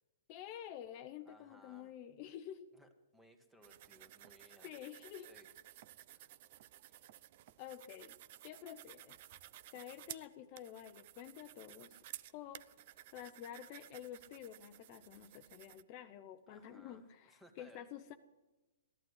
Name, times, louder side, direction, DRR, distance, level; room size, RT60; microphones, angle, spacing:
voice 1, 0.3-2.7 4.6-5.3 7.6-8.2 8.4-9.2 9.7-12.0 12.3-12.7 13.1-18.1, left 10 dB, 35° left, 8 dB, 0.8 m, -50 dB
voice 2, 1.2-1.9 2.7-4.8 5.3-5.5 6.1-6.3 6.8-7.0 16.5-17.9, equal, 5° right, 6 dB, 1.7 m, -63 dB
sound 1, 3.6-15.8, right 13 dB, 45° right, 0.6 m, -55 dB
14.5 x 11.5 x 8.1 m, 1.1 s
hypercardioid pair, 150°, 0 cm